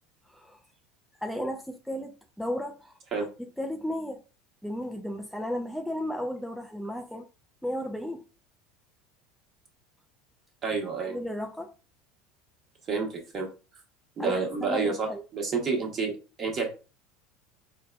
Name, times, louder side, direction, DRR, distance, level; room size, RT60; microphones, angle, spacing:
voice 1, 0.3-0.6 1.2-3.0 3.6-4.2 4.6-7.3 7.6-8.2 11.0-11.7 14.2-15.2, equal, ahead, 0.4 m, -34 dB
voice 2, 10.6-11.2 12.9-13.5 14.2-16.7, right 4 dB, 35° right, 1.2 m, -29 dB
5.1 x 2.2 x 2.3 m
figure-of-eight pair, 70°, 0 cm